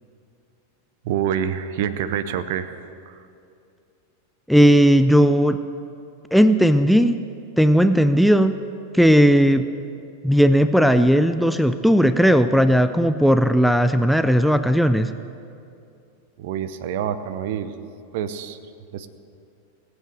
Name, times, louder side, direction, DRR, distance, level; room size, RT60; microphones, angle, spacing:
voice 1, 1.0-3.2 16.4-17.7 18.1-18.6 18.9-19.1, right 9 dB, 50° right, 12 dB, 0.7 m, -27 dB
voice 2, 4.5-5.6 6.3-7.2 7.6-8.6 8.9-9.7 10.2-15.1, equal, ahead, 11 dB, 0.4 m, -16 dB
18.0 x 8.0 x 6.7 m, 2.6 s
figure-of-eight pair, 90°, 0 cm